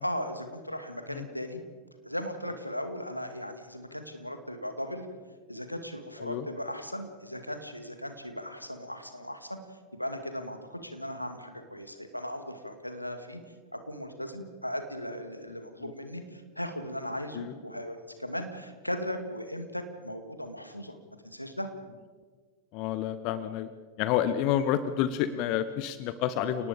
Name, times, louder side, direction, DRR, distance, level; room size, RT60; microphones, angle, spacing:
voice 1, 0.0-1.6 2.0-5.1 5.5-9.6 9.9-13.4 13.7-21.0 21.2-21.7, equal, 90° left, 7 dB, 2.2 m, -37 dB
voice 2, 22.7-23.7 24.0-26.7, left 10 dB, 45° left, 13 dB, 1.0 m, -29 dB
30.0 x 19.0 x 5.1 m, 1.5 s
figure-of-eight pair, 90°, 0 cm